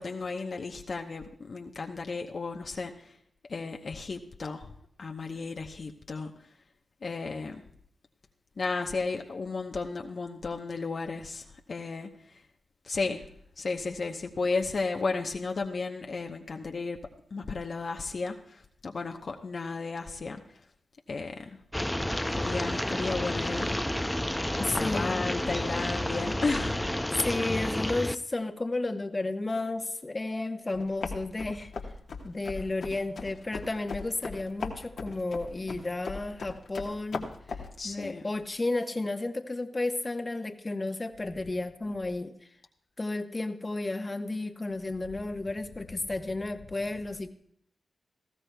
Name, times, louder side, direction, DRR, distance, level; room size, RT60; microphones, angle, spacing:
voice 1, 0.0-3.1 3.5-4.7 5.0-6.3 7.0-7.6 8.6-12.4 12.8-13.2 13.6-17.0 17.3-20.4 21.1-21.5 22.3-24.1 24.6-26.8 37.8-38.3, left 4 dB, 60° left, 3 dB, 0.9 m, -34 dB
sound 1, 21.7-28.1, left 1 dB, 10° left, 0.5 m, -30 dB
voice 2, 24.6-25.3 27.1-31.7 32.2-37.3 37.8-42.5 43.0-47.3, left 2 dB, 35° left, 7 dB, 1.1 m, -32 dB
sound 2, 30.7-37.7, left 4 dB, 80° left, 1.3 m, -39 dB
18.5 x 14.5 x 2.3 m, 0.68 s
supercardioid pair, 40°, 0 cm